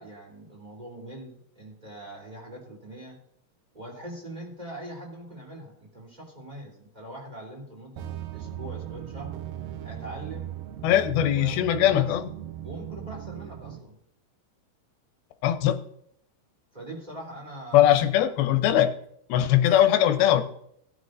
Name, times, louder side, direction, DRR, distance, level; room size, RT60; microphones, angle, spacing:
voice 1, 0.0-3.2 3.7-8.0 8.3-9.3 9.8-10.5 11.3-12.2 12.6-13.9 16.7-17.9 18.4-18.6, right 1 dB, 10° right, -1 dB, 3.3 m, -42 dB
sound 1, 8.0-13.8, right 12 dB, 75° right, 2.3 m, -38 dB
voice 2, 10.8-12.2 15.4-15.8 17.7-18.9 19.3-20.4, left 11 dB, 85° left, 9 dB, 2.7 m, -20 dB
18.0 x 9.5 x 2.7 m, 0.72 s
omnidirectional pair, 4.3 m